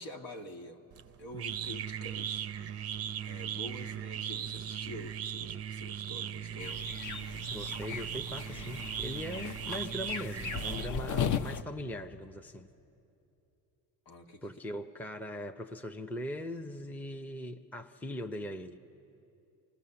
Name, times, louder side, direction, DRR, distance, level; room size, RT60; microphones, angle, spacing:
voice 1, 0.0-2.5 3.2-6.9 14.0-14.5, left 1 dB, 65° left, 4 dB, 1.7 m, -47 dB
sound 1, 0.9-11.3, right 9 dB, 35° right, 0.5 m, -38 dB
sound 2, 6.6-11.6, left 7 dB, 40° left, 0.7 m, -37 dB
voice 2, 7.5-12.7 14.4-18.8, equal, 5° left, 5 dB, 0.7 m, -40 dB
25.0 x 20.0 x 7.0 m, 2.8 s
supercardioid pair, 80°, 46 cm